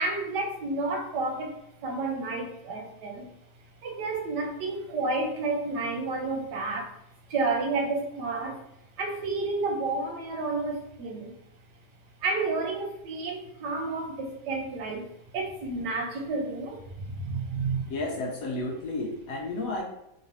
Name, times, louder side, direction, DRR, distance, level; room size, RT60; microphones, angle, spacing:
voice 1, 0.0-3.3 3.8-7.0 7.3-8.6 9.0-11.3 12.2-17.9, right 3 dB, 75° right, 2 dB, 1.3 m, -31 dB
voice 2, 17.9-19.8, left 2 dB, 65° left, 0 dB, 1.0 m, -32 dB
3.9 x 3.0 x 2.6 m, 0.84 s
omnidirectional pair, 1.8 m